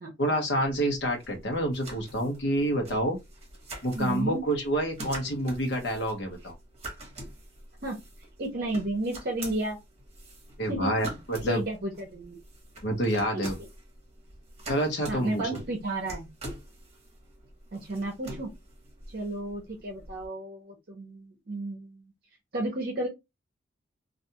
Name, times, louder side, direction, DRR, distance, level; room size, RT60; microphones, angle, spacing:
voice 1, 0.2-3.2 3.8-6.5 10.6-11.6 12.8-13.6 14.7-15.4, right 1 dB, 60° left, 0.9 m, -28 dB
sound 1, 0.6-20.3, right 1 dB, 30° right, 1.0 m, -45 dB
voice 2, 3.9-4.4 7.8-8.0 8.4-9.8 10.7-10.9 11.5-12.4 13.3-13.4 15.1-16.3 17.7-18.5 19.1-22.0 22.5-23.1, right 2 dB, 50° right, 0.7 m, -32 dB
2.4 x 2.3 x 2.8 m
head